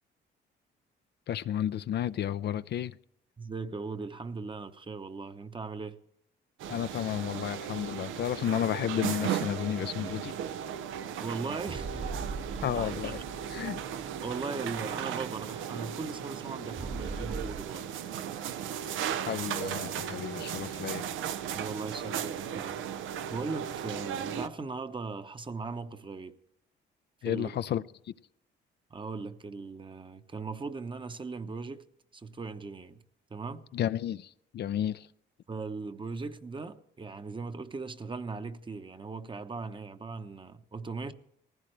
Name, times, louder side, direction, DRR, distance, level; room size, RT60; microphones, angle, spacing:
voice 1, 1.3-3.0 6.7-10.3 12.6-13.2 13.5-13.8 19.3-21.0 27.2-27.8 33.7-35.1, left 10 dB, 60° left, 0.5 m, -32 dB
voice 2, 3.4-6.0 11.2-12.2 12.7-13.2 14.2-17.9 21.5-22.8 23.3-26.4 27.2-27.5 28.9-31.8 32.1-33.0 33.3-33.6 35.5-41.1, right 4 dB, 25° right, 0.9 m, -39 dB
sound 1, 6.6-24.5, right 9 dB, 90° right, 0.7 m, -36 dB
sound 2, 11.7-17.6, right 3 dB, 50° right, 1.7 m, -42 dB
19.0 x 15.5 x 3.3 m
cardioid pair, 90°, 20 cm